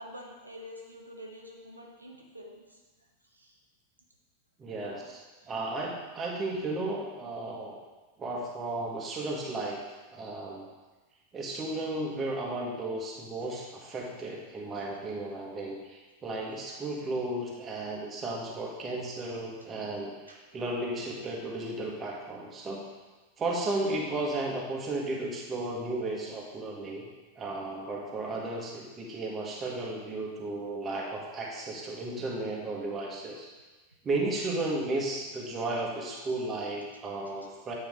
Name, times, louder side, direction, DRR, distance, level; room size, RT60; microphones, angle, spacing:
voice 1, 0.0-2.8 3.3-3.6 4.8-5.0 16.4-16.7 20.3-20.4, equal, 85° right, -1 dB, 0.9 m, -47 dB
voice 2, 4.6-5.2 5.5-7.8 8.2-9.8 10.1-10.6 11.3-22.8 23.4-27.1 27.3-33.5 34.0-37.7, right 2 dB, 20° right, -2 dB, 1.6 m, -34 dB
9.1 x 4.8 x 3.7 m, 1.3 s
figure-of-eight pair, 90°, 0 cm